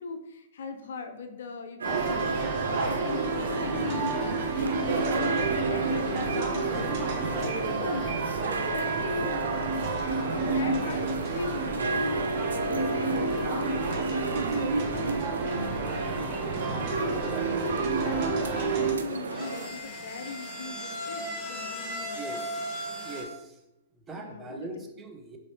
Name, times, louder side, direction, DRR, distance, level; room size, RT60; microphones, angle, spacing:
voice 1, 0.0-9.6 10.3-15.1 15.4-16.3 16.7-17.2 17.6-22.3 24.2-24.9, left 4 dB, 60° left, 7 dB, 0.4 m, -39 dB
sound 1, 1.8-18.9, right 4 dB, 45° right, 0.8 m, -30 dB
sound 2, 1.8-19.7, right 3 dB, 70° right, 0.4 m, -33 dB
sound 3, 19.1-23.2, equal, 15° left, 1.1 m, -37 dB
voice 2, 22.1-22.8 23.1-23.5 24.1-25.4, right 2 dB, 15° right, 3 dB, 0.6 m, -41 dB
4.0 x 3.1 x 2.8 m, 0.95 s
figure-of-eight pair, 110°, 0 cm